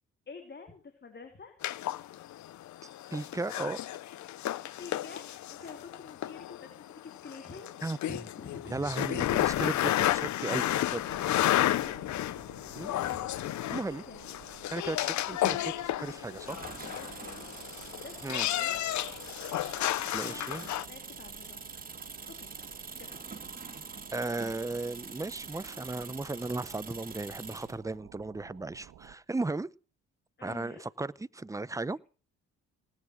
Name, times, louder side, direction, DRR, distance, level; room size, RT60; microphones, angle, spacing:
voice 1, 0.3-1.6 4.6-9.3 10.8-12.0 12.9-13.3 13.9-14.2 15.2-15.6 16.9-17.4 18.0-18.8 19.9-20.5 20.8-21.8 22.4-22.5 22.9-23.1 24.4-24.6 30.4-30.8, left 4 dB, 35° left, 3.1 m, -48 dB
sound 1, 1.6-20.9, left 13 dB, 70° left, 0.8 m, -32 dB
voice 2, 3.1-3.8 7.8-8.0 8.7-11.0 12.7-12.9 13.7-14.0 14.7-16.6 18.2-18.5 20.1-20.6 24.1-29.7 30.4-32.0, right 2 dB, 10° right, 0.7 m, -36 dB
sound 2, 10.6-29.2, right 11 dB, 75° right, 1.6 m, -54 dB
sound 3, 16.4-27.8, right 4 dB, 30° right, 3.2 m, -45 dB
19.0 x 9.7 x 6.3 m
cardioid pair, 90°, 30 cm